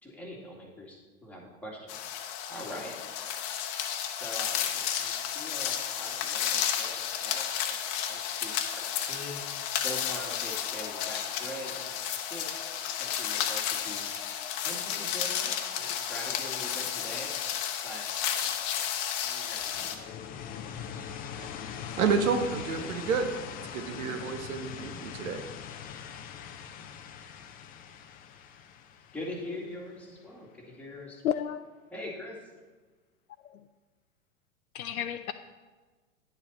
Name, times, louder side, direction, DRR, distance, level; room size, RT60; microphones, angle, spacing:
voice 1, 0.0-2.0 2.5-3.0 4.1-9.4 9.8-12.6 12.9-14.1 14.6-17.3 17.8-20.1 29.1-31.2 31.9-32.5, left 1 dB, 5° left, -3 dB, 2.1 m, -43 dB
sound 1, 1.9-19.9, left 9 dB, 35° left, 1.0 m, -32 dB
sound 2, 19.6-30.3, left 8 dB, 20° left, 0.5 m, -42 dB
voice 2, 22.0-23.3 23.7-25.4, right 5 dB, 65° right, 7 dB, 1.3 m, -29 dB
voice 3, 31.2-31.6 33.4-33.6 34.7-35.3, left 10 dB, 80° left, 9 dB, 0.6 m, -31 dB
10.5 x 7.1 x 4.2 m, 1.4 s
hypercardioid pair, 105°, 43 cm